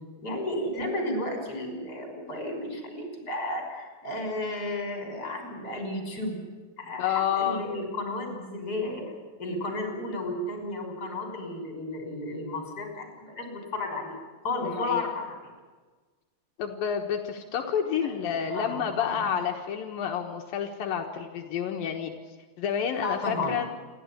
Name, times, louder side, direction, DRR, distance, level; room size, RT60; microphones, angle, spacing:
voice 1, 0.2-6.4 6.8-9.1 9.4-14.2 14.4-15.5 18.0-18.2 18.5-19.3 23.0-23.5, left 2 dB, 25° left, 2 dB, 6.1 m, -33 dB
voice 2, 7.0-7.6 14.6-15.1 16.6-22.1 22.6-23.7, left 8 dB, 80° left, 2 dB, 3.1 m, -29 dB
28.0 x 13.0 x 9.8 m, 1.3 s
omnidirectional pair, 4.1 m